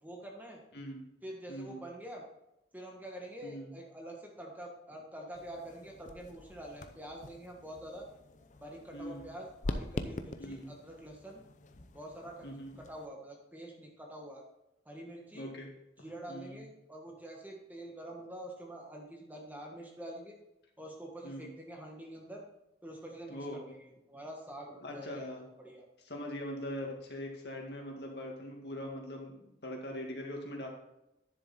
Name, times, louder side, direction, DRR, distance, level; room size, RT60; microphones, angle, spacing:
voice 1, 0.0-0.6 1.2-2.2 2.7-8.1 8.6-11.4 11.9-12.4 12.8-14.4 14.8-15.5 16.0-20.4 20.8-22.4 22.8-25.3 25.6-25.9, right 1 dB, 10° right, 0 dB, 1.4 m, -46 dB
voice 2, 0.7-1.0 1.5-1.8 3.4-3.7 8.9-9.2 10.4-10.7 12.4-12.8 15.3-15.7 16.3-16.6 21.2-21.5 23.3-23.7 24.8-25.4 26.0-30.7, left 1 dB, 65° left, 1 dB, 2.1 m, -42 dB
sound 1, 5.3-13.1, left 2 dB, 40° left, 0.6 m, -44 dB
10.5 x 7.1 x 4.3 m, 0.86 s
head